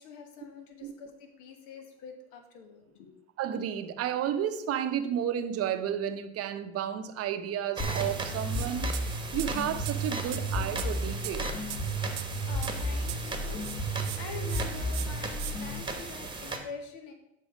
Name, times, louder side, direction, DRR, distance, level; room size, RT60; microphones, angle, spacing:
voice 1, 0.0-3.1 12.0-13.6 14.1-17.1, left 4 dB, 60° left, 5 dB, 1.6 m, -45 dB
voice 2, 3.4-11.5, right 9 dB, 45° right, 9 dB, 0.8 m, -32 dB
sound 1, 7.8-15.8, right 1 dB, 30° left, 2.0 m, -33 dB
sound 2, 7.8-16.6, right 3 dB, 15° right, 1.3 m, -38 dB
sound 3, 8.5-8.7 8.9-13.3 13.6-14.2 14.5-14.6 14.9-15.5, right 12 dB, 85° right, 0.7 m, -40 dB
7.2 x 4.9 x 5.0 m, 0.86 s
hypercardioid pair, 85°, 35 cm